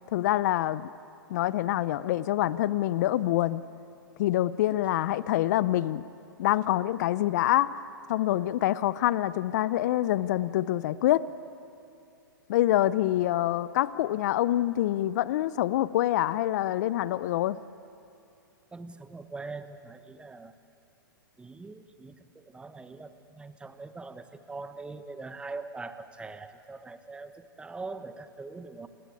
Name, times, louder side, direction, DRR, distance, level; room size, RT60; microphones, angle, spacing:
voice 1, 0.1-0.9 1.3-3.6 4.2-6.0 6.4-7.8 8.1-11.3 12.5-17.6, left 14 dB, 50° left, 17 dB, 0.7 m, -26 dB
voice 2, 18.7-20.5 21.4-28.9, right 3 dB, 10° right, 10 dB, 1.2 m, -42 dB
29.5 x 18.5 x 8.6 m, 2.6 s
hypercardioid pair, 115°, 12 cm